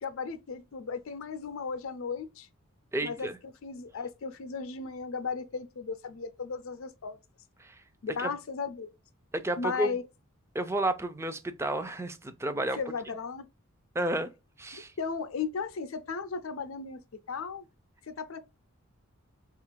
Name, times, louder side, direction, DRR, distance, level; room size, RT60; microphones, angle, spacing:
voice 1, 0.0-2.5 3.0-7.2 8.0-8.9 9.6-10.0 12.7-13.5 15.0-17.0 17.3-17.7 18.0-18.4, left 5 dB, 70° left, 0.5 m, -36 dB
voice 2, 2.9-3.4 7.6-7.8 8.2-8.3 9.3-9.9 10.5-12.8 13.9-14.3 14.6-14.9, right 1 dB, 10° right, 0.4 m, -31 dB
3.5 x 2.5 x 4.5 m
head